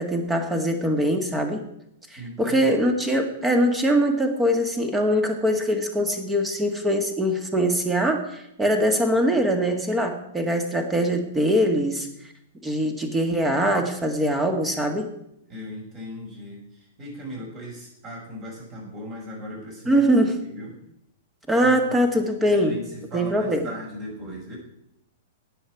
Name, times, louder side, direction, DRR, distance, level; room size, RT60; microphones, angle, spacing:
voice 1, 0.0-1.6 2.1-12.1 12.6-15.1 19.9-20.4 21.5-22.8 23.1-23.7, equal, 10° right, 6 dB, 1.8 m, -22 dB
voice 2, 2.2-2.7 15.5-16.6 17.0-20.1 20.4-20.7 21.6-21.7 22.5-22.8 23.1-24.6, equal, 30° right, -2 dB, 6.1 m, -37 dB
18.5 x 7.0 x 4.8 m, 0.78 s
figure-of-eight pair, 105°, 0 cm